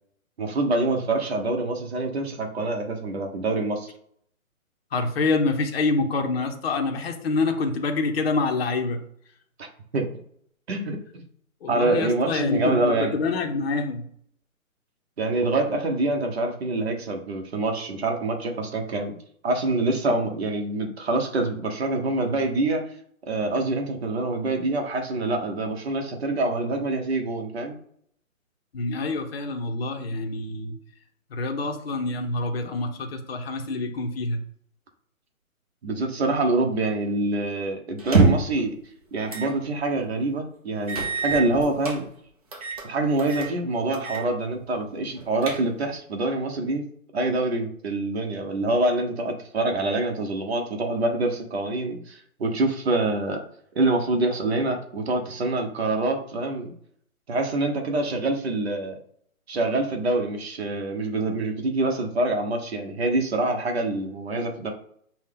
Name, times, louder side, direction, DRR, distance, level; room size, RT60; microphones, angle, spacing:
voice 1, 0.4-3.9 9.6-9.7 9.9-10.1 10.7-11.2 11.7-13.2 15.2-19.1 19.4-22.8 23.3-27.8 35.8-38.7 39.1-42.0 42.8-46.8 47.1-53.4 53.7-56.7 57.3-58.9 59.5-64.7, right 2 dB, 45° right, 3 dB, 1.1 m, -25 dB
voice 2, 4.9-9.0 11.6-14.0 28.7-30.7 31.3-34.4, left 3 dB, 45° left, 3 dB, 0.8 m, -26 dB
sound 1, 38.0-38.6 39.3-39.5 39.9-40.0 40.9-42.0 42.5-42.9 43.2-43.5 43.9-44.3 44.6-44.7 45.2-45.9, right 3 dB, 25° right, 0.8 m, -24 dB
5.7 x 2.3 x 3.7 m, 0.65 s
hypercardioid pair, 155°, 42 cm